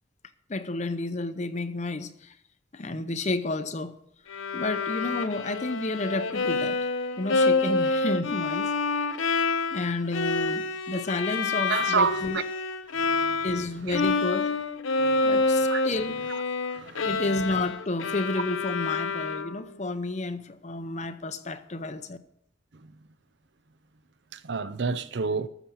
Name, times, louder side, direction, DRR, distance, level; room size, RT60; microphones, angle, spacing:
voice 1, 0.5-2.3 2.7-4.0 4.5-6.8 7.2-8.7 9.0-9.1 9.7-12.4 13.4-14.6 15.2-16.2 17.0-22.2, left 2 dB, 35° left, 0.7 m, -31 dB
Bowed string instrument, 4.3-13.7 13.9-19.7, left 3 dB, 85° left, 0.8 m, -27 dB
voice 2, 11.7-12.4 12.9-13.5 13.9-14.0 15.0-15.8 16.3-16.4 16.7-17.3 22.7-22.9 24.3-25.5, right 5 dB, 55° right, 0.6 m, -30 dB
13.0 x 7.1 x 7.0 m
head